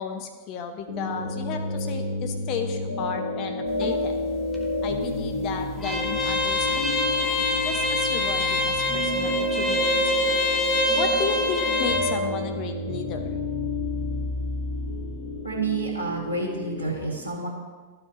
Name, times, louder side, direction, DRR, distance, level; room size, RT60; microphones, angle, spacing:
voice 1, 0.0-4.2 4.8-10.1 11.0-13.3, left 6 dB, 40° left, 5 dB, 0.8 m, -34 dB
sound 1, 0.9-16.9, equal, 60° left, 1.5 m, -30 dB
sound 2, 3.7-12.0, left 3 dB, 5° left, 1.2 m, -26 dB
voice 2, 15.4-17.5, right 3 dB, 90° left, -3 dB, 2.0 m, -29 dB
13.5 x 4.9 x 3.0 m, 1.3 s
figure-of-eight pair, 90°, 0 cm